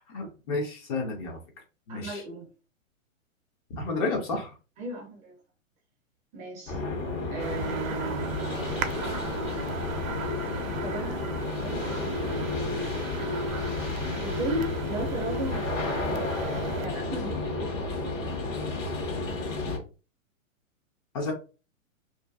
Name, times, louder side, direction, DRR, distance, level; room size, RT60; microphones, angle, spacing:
voice 1, 0.1-1.4 1.9-2.2 3.7-4.5 21.1-21.3, left 3 dB, 30° left, 0.5 m, -31 dB
voice 2, 1.9-2.5 4.8-5.4 6.3-6.8 7.3-8.7 10.8-12.9 14.2-16.4 16.8-18.1, right 2 dB, 20° right, 0.5 m, -36 dB
sound 1, 6.7-19.8, left 3 dB, 65° left, 1.1 m, -31 dB
sound 2, 7.4-16.9, right 6 dB, 75° right, 0.6 m, -37 dB
2.5 x 2.5 x 2.3 m
hypercardioid pair, 125°, 41 cm